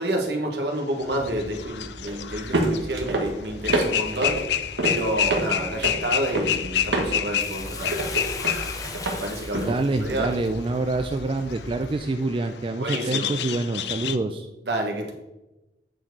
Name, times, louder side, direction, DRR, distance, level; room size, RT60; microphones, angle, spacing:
voice 1, 0.0-4.4 4.8-8.0 9.2-10.3 12.8-13.3 14.6-15.1, right 1 dB, 70° right, 2 dB, 1.5 m, -29 dB
sound 1, 1.0-3.3 3.6-14.2, left 9 dB, 70° left, 0.5 m, -29 dB
sound 2, 1.0-11.9, right 1 dB, 90° right, 1.2 m, -30 dB
Bathtub (filling or washing), 7.4-11.9 12.4-12.5, left 3 dB, 20° left, 0.8 m, -38 dB
voice 2, 9.5-14.5, right 2 dB, 30° right, 6 dB, 0.4 m, -26 dB
8.9 x 4.7 x 4.6 m, 0.97 s
head